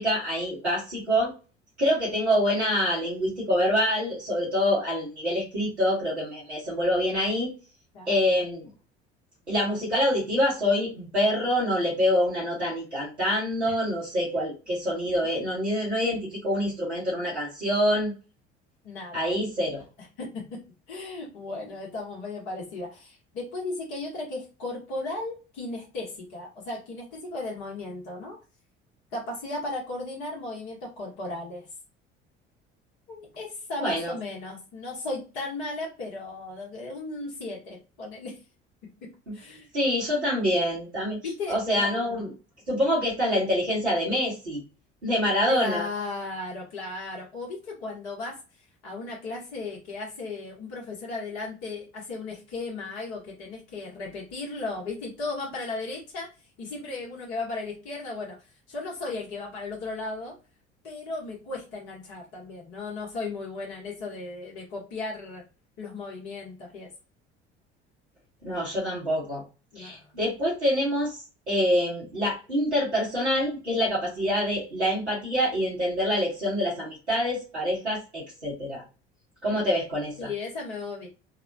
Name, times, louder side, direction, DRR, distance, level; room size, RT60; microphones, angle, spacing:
voice 1, 0.0-1.3 1.8-7.5 8.1-8.7 9.5-18.1 19.1-19.8 33.8-34.1 39.7-41.2 41.5-42.3 42.7-44.6 45.0-45.8 68.4-69.4 69.7-78.8 79.4-80.3, equal, 90° right, -7 dB, 1.2 m, -26 dB
voice 2, 18.8-19.3 20.0-20.4 20.9-28.4 29.1-31.7 33.1-38.4 39.3-39.7 41.2-42.3 45.5-48.4 48.8-56.3 56.6-58.4 58.7-60.4 60.8-65.4 65.8-66.9 69.7-70.1 80.2-81.1, left 3 dB, 60° left, -3 dB, 1.2 m, -36 dB
3.4 x 2.1 x 2.6 m, 0.33 s
figure-of-eight pair, 60°, 33 cm